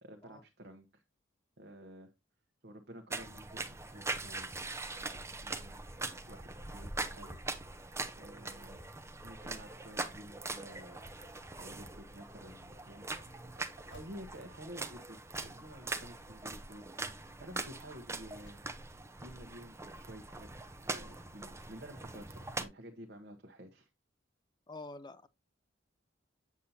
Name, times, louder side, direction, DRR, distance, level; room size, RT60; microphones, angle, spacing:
voice 1, 0.0-1.0 1.6-2.1 2.6-4.5 4.9-7.4 8.2-8.8 9.2-11.0 11.6-13.2 13.5-13.6 13.9-18.6 19.2-23.9, equal, 55° right, 1.1 m, -51 dB
sound 1, 3.1-22.6, right 3 dB, 15° right, 0.7 m, -42 dB
sound 2, 12.1-12.6 13.1-16.7 17.1-17.4 17.9-19.2 19.7-20.7 21.3-21.5 21.7-21.8, left 1 dB, 70° left, 1.8 m, -63 dB
voice 2, 24.7-25.3, left 2 dB, 20° left, 0.6 m, -46 dB
8.4 x 7.3 x 2.8 m
head